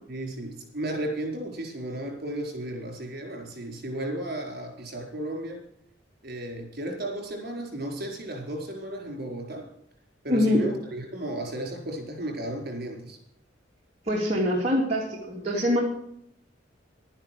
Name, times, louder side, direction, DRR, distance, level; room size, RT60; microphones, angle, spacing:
voice 1, 0.1-5.6 6.2-9.7 10.2-13.2, right 1 dB, 55° right, 2 dB, 4.7 m, -34 dB
voice 2, 10.3-10.6 14.1-15.8, left 1 dB, 35° right, -4 dB, 3.0 m, -24 dB
12.0 x 11.0 x 6.1 m, 0.73 s
head